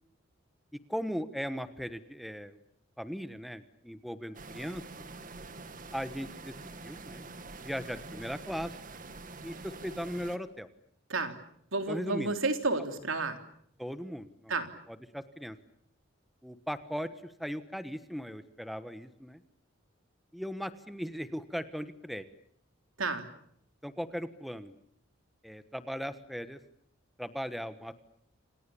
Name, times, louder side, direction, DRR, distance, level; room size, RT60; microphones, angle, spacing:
voice 1, 0.7-2.6 3.0-5.0 5.9-6.5 6.8-7.3 7.6-8.7 9.4-10.7 11.9-12.3 13.8-14.5 14.9-15.6 16.4-19.4 20.3-22.2 23.8-24.7 25.4-26.6 27.2-27.9, equal, ahead, 11 dB, 1.2 m, -38 dB
sound 1, 4.3-10.4, right 3 dB, 40° right, 1.9 m, -46 dB
voice 2, 11.7-13.4 14.5-14.7 23.0-23.3, right 3 dB, 80° right, 7 dB, 3.5 m, -31 dB
28.5 x 27.5 x 7.1 m, 0.68 s
head